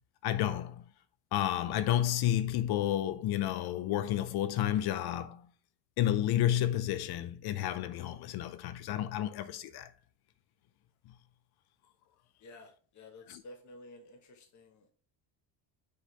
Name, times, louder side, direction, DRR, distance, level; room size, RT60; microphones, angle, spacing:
voice 1, 0.2-0.8 1.3-5.5 6.0-9.9 13.3-13.4, left 12 dB, 55° left, 0.6 m, -31 dB
voice 2, 12.4-14.9, left 2 dB, 40° left, 1.3 m, -52 dB
6.4 x 3.9 x 4.0 m
cardioid pair, 140°, 45 cm